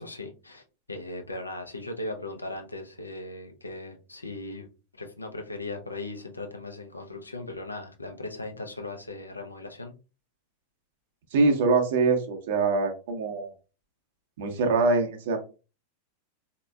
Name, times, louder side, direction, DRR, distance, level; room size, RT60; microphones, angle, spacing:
voice 1, 0.0-4.7 4.9-9.9, left 2 dB, 80° left, 4 dB, 0.7 m, -38 dB
voice 2, 11.3-13.5 14.4-15.4, right 3 dB, 55° right, 3 dB, 1.0 m, -24 dB
4.2 x 2.9 x 2.3 m, 0.32 s
figure-of-eight pair, 90°, 0 cm